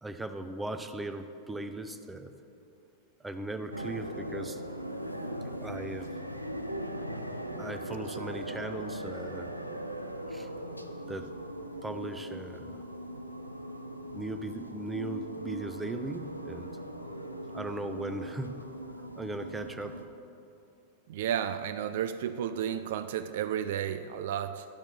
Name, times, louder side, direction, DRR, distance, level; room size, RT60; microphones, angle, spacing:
voice 1, 0.0-2.3 3.2-4.6 5.4-6.1 7.6-9.5 10.3-10.5 11.1-11.3 11.8-12.8 14.1-16.8 17.5-18.7 19.2-20.0, right 2 dB, 10° right, 8 dB, 0.6 m, -38 dB
sound 1, 3.7-20.1, right 1 dB, 90° left, 0.6 m, -39 dB
voice 2, 21.1-24.7, right 9 dB, 55° right, 10 dB, 0.3 m, -32 dB
12.0 x 5.8 x 5.5 m, 2.7 s
figure-of-eight pair, 90°, 0 cm